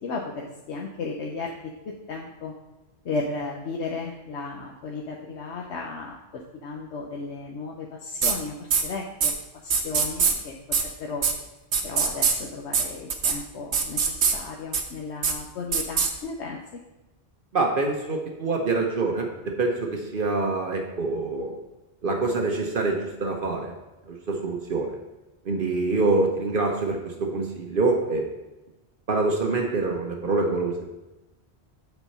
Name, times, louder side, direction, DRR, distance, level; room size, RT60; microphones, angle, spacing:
voice 1, 0.0-2.5 3.0-9.3 9.6-10.6 11.0-11.3 11.8-16.6, left 3 dB, 80° left, 0 dB, 1.0 m, -34 dB
sound 1, 8.2-8.3 8.7-8.8 9.2-9.3 9.7-10.3 10.7-10.8 11.2-11.3 11.7-12.3 12.7-12.8 13.1-13.3 13.7-14.3 14.7-14.8 15.2-15.3 15.7-16.1, right 6 dB, 75° right, 1.1 m, -22 dB
voice 2, 17.5-21.5 22.0-23.7 24.1-25.0 25.4-28.2 29.1-30.9, right 3 dB, 55° right, 2 dB, 1.0 m, -25 dB
7.9 x 4.3 x 5.4 m, 1.0 s
omnidirectional pair, 1.1 m